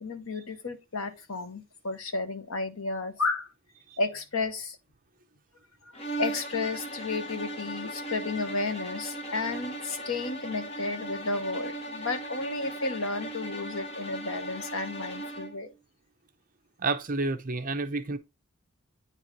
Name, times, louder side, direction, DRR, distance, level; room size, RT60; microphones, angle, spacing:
voice 1, 0.0-3.5 4.0-4.8 5.8-15.7, left 3 dB, 70° left, 1.1 m, -32 dB
sound 1, 5.9-15.6, right 1 dB, 30° left, 1.0 m, -37 dB
voice 2, 16.8-18.2, right 3 dB, 40° right, 0.7 m, -30 dB
8.6 x 4.2 x 3.0 m
head